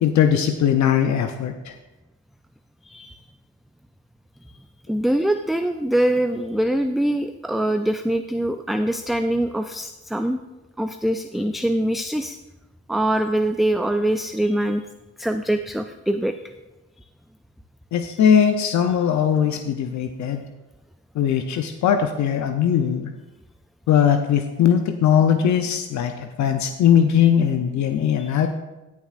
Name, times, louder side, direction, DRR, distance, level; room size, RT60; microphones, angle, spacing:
voice 1, 0.0-1.7 17.9-20.4 21.2-23.1 23.9-28.5, left 8 dB, 70° left, 6 dB, 0.7 m, -20 dB
voice 2, 2.8-3.1 4.9-10.4 10.8-12.4 12.9-14.8 15.2-16.4 28.2-28.3, right 1 dB, ahead, 7 dB, 0.3 m, -23 dB
16.0 x 7.2 x 2.5 m, 1.1 s
cardioid pair, 90°, 30 cm